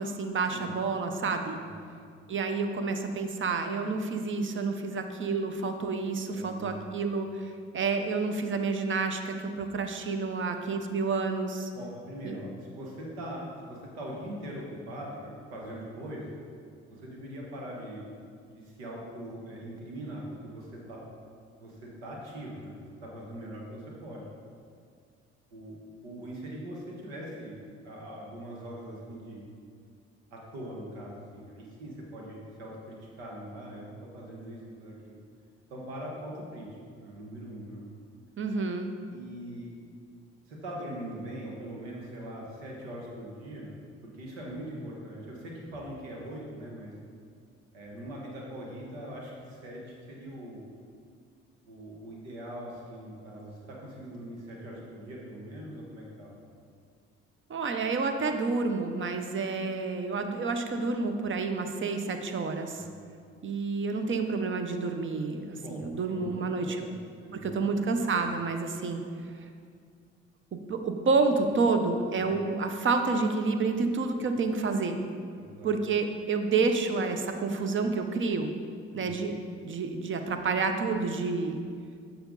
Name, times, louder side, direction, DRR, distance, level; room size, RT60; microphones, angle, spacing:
voice 1, 0.0-1.6 2.3-11.7 12.2-12.4 38.4-38.9 57.5-62.8 63.4-66.9 67.3-69.0 69.4-69.5 70.5-75.0 75.6-78.5 78.9-79.4 79.6-81.6, right 4 dB, 40° right, 6 dB, 0.8 m, -29 dB
voice 2, 1.6-1.9 6.3-7.0 11.7-16.3 16.9-18.0 18.5-21.0 21.6-24.3 25.5-29.5 30.3-35.2 35.7-36.7 36.9-37.9 39.1-39.7 40.5-46.9 47.7-50.6 51.7-56.3 62.7-63.0 65.5-66.9 67.2-67.7 68.1-68.3 72.2-72.3 75.3-75.7 78.9-79.1, right 1 dB, 90° right, -2 dB, 1.3 m, -42 dB
6.9 x 5.6 x 3.9 m, 2.2 s
hypercardioid pair, 55°, 30 cm